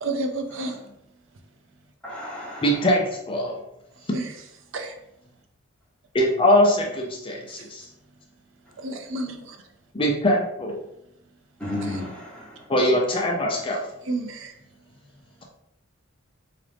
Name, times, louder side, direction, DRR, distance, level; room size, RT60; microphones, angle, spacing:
voice 1, 0.0-0.8 4.0-4.3 4.7-5.0 7.5-7.7 8.8-9.6 11.8-12.0 14.0-14.5, right 2 dB, 65° right, 4 dB, 0.5 m, -31 dB
voice 2, 2.0-2.7 11.6-12.6, left 1 dB, 5° left, -6 dB, 1.0 m, -33 dB
voice 3, 2.6-3.6 6.1-7.9 9.9-10.8 12.7-13.8, equal, 25° left, 0 dB, 0.4 m, -22 dB
3.9 x 2.4 x 3.3 m, 0.80 s
head